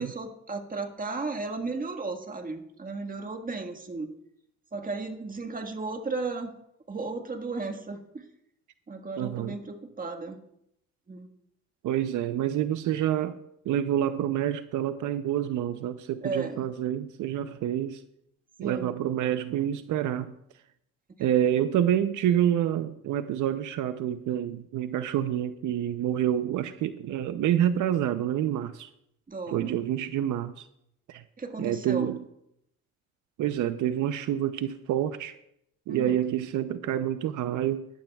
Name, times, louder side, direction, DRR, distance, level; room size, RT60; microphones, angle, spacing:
voice 1, 0.0-4.1 4.7-6.5 6.9-8.3 8.9-10.4 11.1-11.3 16.2-16.6 18.6-18.9 29.3-29.7 31.4-32.1 35.9-36.2, right 3 dB, 30° right, 6 dB, 1.6 m, -34 dB
voice 2, 9.2-9.5 11.8-13.4 13.7-18.0 18.6-20.3 21.2-28.9 29.5-30.6 31.1-31.2 31.6-32.2 33.4-35.4 35.9-37.9, right 11 dB, 80° right, 11 dB, 0.7 m, -27 dB
19.0 x 12.0 x 2.3 m, 0.78 s
cardioid pair, 90°, 30 cm